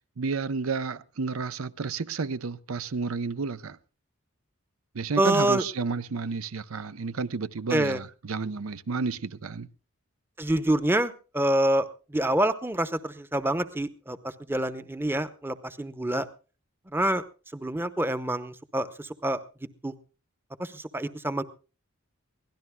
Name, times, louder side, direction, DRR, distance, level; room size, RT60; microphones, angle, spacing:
voice 1, 0.2-3.8 4.9-9.7, right 4 dB, 80° right, 0.7 m, -31 dB
voice 2, 5.2-5.6 7.7-8.0 10.4-16.3 16.9-17.2 17.5-19.4 19.8-19.9 20.6-21.4, right 1 dB, 10° right, 0.7 m, -27 dB
23.5 x 17.0 x 2.2 m
head